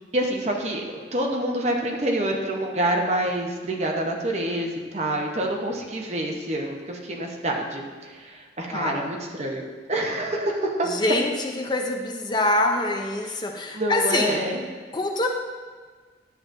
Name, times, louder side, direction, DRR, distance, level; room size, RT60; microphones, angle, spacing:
voice 1, 0.1-0.8 1.1-9.6 9.9-10.9 13.2-13.3 13.7-14.6, right 1 dB, 35° right, 1 dB, 0.9 m, -27 dB
voice 2, 8.7-9.1 10.9-14.4 14.9-15.3, left 2 dB, 25° left, 3 dB, 0.5 m, -25 dB
10.5 x 7.6 x 2.6 m, 1.5 s
head